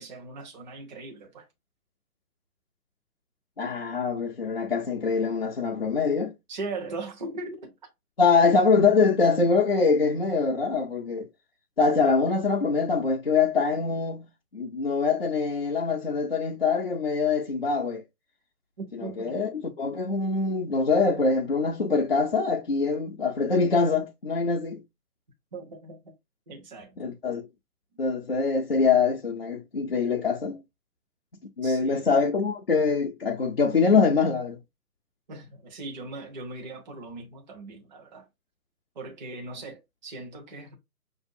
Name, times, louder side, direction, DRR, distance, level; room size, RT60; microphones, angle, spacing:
voice 1, 0.0-1.4 6.5-7.7 18.8-19.5 25.5-26.0 26.5-26.9 31.6-32.1 35.3-38.3 39.0-40.7, right 3 dB, 30° right, 0.8 m, -39 dB
voice 2, 3.6-6.3 8.2-11.3 11.8-14.3 14.5-18.0 18.9-24.8 27.0-27.4 28.0-30.6 31.6-34.6, left 4 dB, 40° left, 0.4 m, -24 dB
6.0 x 2.6 x 2.5 m
figure-of-eight pair, 140°, 47 cm